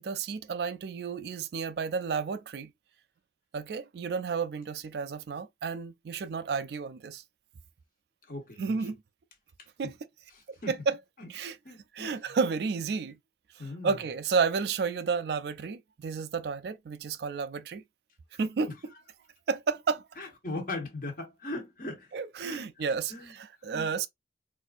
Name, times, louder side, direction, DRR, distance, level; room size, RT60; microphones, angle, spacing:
voice 1, 0.0-2.7 3.5-7.2 8.6-9.0 9.8-9.9 10.7-11.0 11.3-11.6 12.0-13.2 13.8-17.8 18.4-18.7 19.5-20.0 22.1-24.1, right 5 dB, 60° right, 0.3 m, -31 dB
voice 2, 8.3-8.9 10.3-10.8 11.2-11.3 11.6-12.2 13.6-14.0 20.2-22.1 22.4-23.3 23.6-23.9, left 2 dB, 50° left, 1.3 m, -39 dB
4.1 x 2.6 x 2.5 m
head